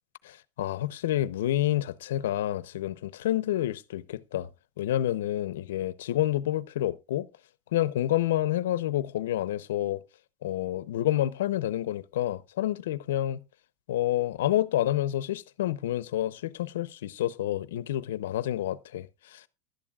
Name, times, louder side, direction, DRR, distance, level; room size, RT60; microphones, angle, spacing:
voice 1, 0.2-4.5 4.8-7.3 7.7-10.0 10.4-13.4 13.9-19.5, left 13 dB, 85° left, 0.7 m, -29 dB
16.0 x 11.5 x 2.4 m
supercardioid pair, 165°, 0 cm